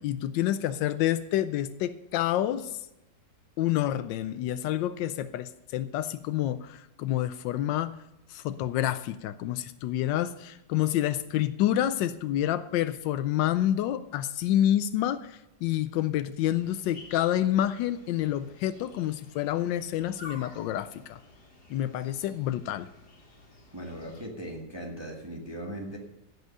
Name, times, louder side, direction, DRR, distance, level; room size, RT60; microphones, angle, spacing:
voice 1, 0.0-2.8 3.6-8.0 8.3-21.2 21.7-22.9, left 12 dB, 90° left, 12 dB, 1.3 m, -28 dB
sound 1, 16.4-24.3, left 2 dB, 60° left, 2.4 m, -51 dB
voice 2, 23.7-26.0, right 1 dB, 15° right, -1 dB, 1.5 m, -38 dB
15.5 x 6.3 x 6.7 m, 0.92 s
omnidirectional pair, 1.9 m